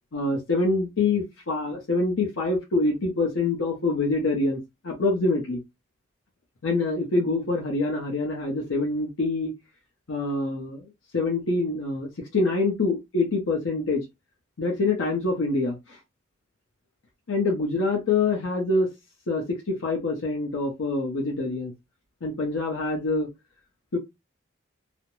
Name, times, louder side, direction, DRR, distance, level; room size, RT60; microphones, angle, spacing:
voice 1, 0.1-4.6 4.8-5.6 6.6-9.5 10.1-14.0 14.6-16.0 17.3-18.9 19.3-21.7 22.2-23.3 23.9-24.0, left 3 dB, 90° left, 0.7 m, -25 dB
2.4 x 2.1 x 3.0 m
head